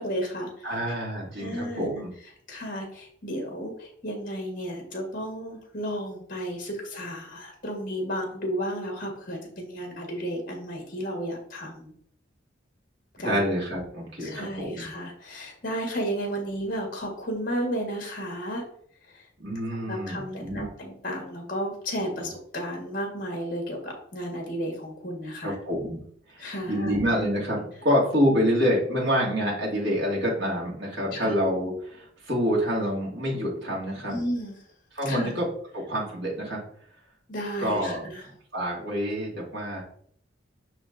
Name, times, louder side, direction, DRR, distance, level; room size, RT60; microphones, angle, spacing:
voice 1, 0.0-0.7 1.4-2.0 2.5-11.9 13.2-13.4 14.2-18.6 19.7-25.5 26.4-27.0 31.1-31.3 34.1-34.5 35.0-35.3 37.3-38.2, equal, 50° left, 2 dB, 1.5 m, -33 dB
voice 2, 0.6-2.1 13.2-14.8 19.4-20.6 25.4-26.0 26.4-34.2 34.9-35.5 35.7-36.6 37.6-38.0 38.5-39.8, equal, 65° right, -4 dB, 2.4 m, -27 dB
5.8 x 4.1 x 3.9 m, 0.63 s
head